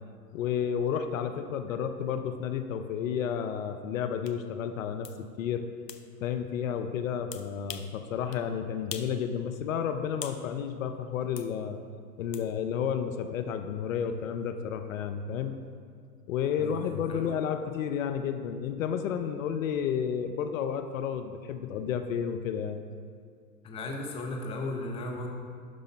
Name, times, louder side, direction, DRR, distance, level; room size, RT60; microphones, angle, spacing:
voice 1, 0.3-5.6 6.2-11.8 12.2-15.6 16.3-22.8, left 8 dB, 55° left, 8 dB, 0.7 m, -31 dB
sound 1, 4.3-4.4 5.0-5.2 5.9-6.0 7.3-7.9 8.3-8.5 8.9-9.2 9.5-10.4 11.4-11.5 12.3-12.5, left 8 dB, 85° left, 0.8 m, -42 dB
voice 2, 16.6-17.3 23.6-25.3, left 2 dB, 10° left, 2 dB, 0.7 m, -36 dB
12.0 x 5.1 x 4.5 m, 2.2 s
hypercardioid pair, 125°, 48 cm